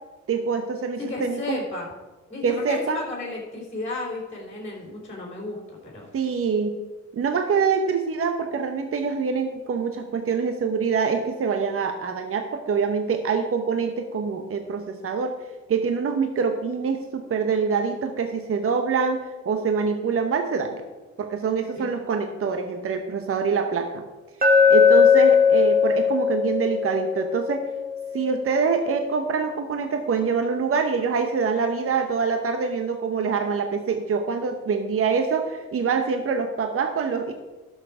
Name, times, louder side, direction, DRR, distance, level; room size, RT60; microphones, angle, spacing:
voice 1, 0.3-1.6 2.4-3.0 6.1-6.8 7.1-15.3 15.7-19.2 19.5-20.8 21.2-24.0 24.7-27.6 28.1-37.3, right 5 dB, 45° right, 6 dB, 1.0 m, -25 dB
voice 2, 1.0-1.9 2.3-6.1 21.8-21.9, left 2 dB, 20° left, -2 dB, 3.4 m, -33 dB
Glass, 24.4-28.5, left 6 dB, 30° right, 1.8 m, -19 dB
11.5 x 6.6 x 4.8 m, 1.2 s
cardioid pair, 90°, 30 cm